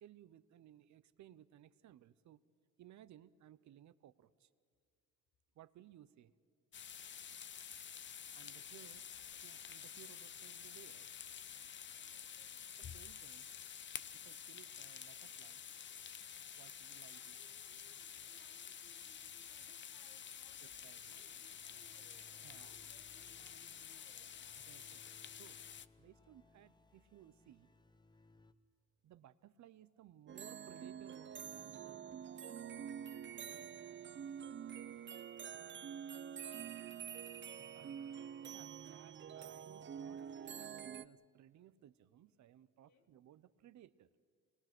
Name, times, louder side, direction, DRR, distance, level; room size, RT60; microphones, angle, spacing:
voice 1, 0.0-2.4 2.8-4.5 5.5-6.3 8.3-9.0 9.4-11.1 12.8-13.5 14.1-15.6 16.6-17.4 20.6-21.2 22.4-22.9 24.7-25.6 26.0-27.7 29.0-32.6 37.7-44.1, right 12 dB, 70° right, 0.8 m, -61 dB
sound 1, 6.7-25.9, left 8 dB, 40° left, 0.6 m, -50 dB
voice 2, 8.4-9.0 11.9-12.8 17.0-20.8 21.1-24.5 28.1-28.2 33.3-37.2 40.5-40.6 42.9-43.1, left 6 dB, 85° left, 2.0 m, -71 dB
sound 2, 20.3-28.5, left 3 dB, 15° left, 1.0 m, -68 dB
sound 3, 30.3-41.0, right 8 dB, 40° right, 0.7 m, -47 dB
27.0 x 21.0 x 6.2 m
cardioid pair, 90°, 30 cm